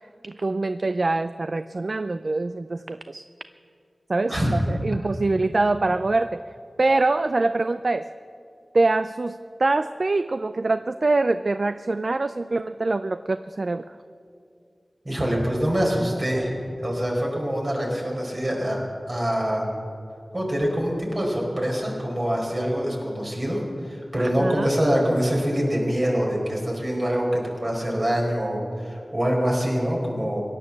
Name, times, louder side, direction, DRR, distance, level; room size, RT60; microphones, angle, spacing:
voice 1, 0.2-3.3 4.1-6.4 6.8-8.1 8.7-13.9 24.2-24.7, right 2 dB, 60° right, 12 dB, 0.3 m, -24 dB
voice 2, 15.0-16.5 16.8-18.8 19.1-19.7 20.3-30.4, equal, 45° right, -2 dB, 4.7 m, -25 dB
17.0 x 11.0 x 7.4 m, 2.4 s
wide cardioid pair, 45°, 0 cm